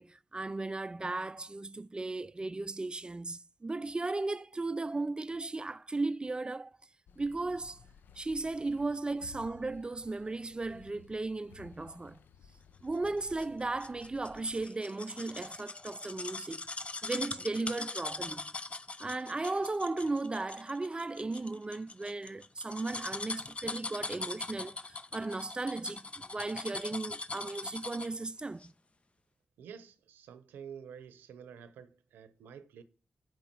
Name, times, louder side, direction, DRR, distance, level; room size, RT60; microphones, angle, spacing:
voice 1, 0.0-6.7 7.2-7.8 8.2-12.2 12.8-16.6 17.0-18.5 19.0-28.7, right 3 dB, 30° right, 0.4 m, -36 dB
sound 1, 7.1-14.7, left 7 dB, 80° left, 0.5 m, -57 dB
sound 2, 13.1-28.2 28.6-28.7, left 3 dB, 40° left, 0.6 m, -41 dB
voice 2, 29.6-32.8, right 7 dB, 90° right, 0.7 m, -49 dB
7.8 x 5.3 x 4.4 m
supercardioid pair, 45°, 3 cm